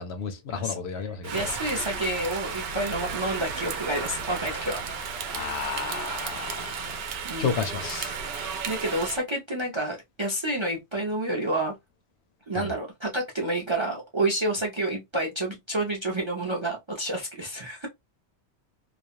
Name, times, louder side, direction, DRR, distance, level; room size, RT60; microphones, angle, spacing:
voice 1, 0.0-1.4 5.3-7.0 7.4-8.1 12.5-12.7, left 6 dB, 70° left, 0.8 m, -32 dB
voice 2, 0.5-4.8 7.3-7.5 8.2-11.8 12.5-17.9, right 1 dB, 35° right, 0.5 m, -29 dB
Rain, 1.2-9.2, right 6 dB, 65° right, 0.8 m, -33 dB
2.4 x 2.1 x 2.7 m
omnidirectional pair, 1.2 m